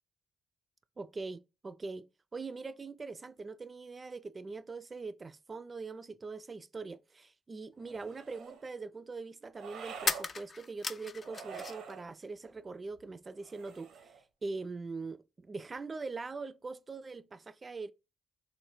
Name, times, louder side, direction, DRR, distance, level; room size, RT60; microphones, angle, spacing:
voice 1, 1.0-14.1 14.4-17.9, right 4 dB, 35° right, 0.3 m, -42 dB
sound 1, 7.7-7.8 10.0-11.9 12.2-13.1, left 5 dB, 45° left, 0.3 m, -37 dB
sound 2, 7.8-8.7 9.5-10.3 11.2-12.1 13.4-14.2, right 6 dB, 80° right, 0.6 m, -47 dB
3.1 x 2.1 x 3.1 m
supercardioid pair, 65°, 0 cm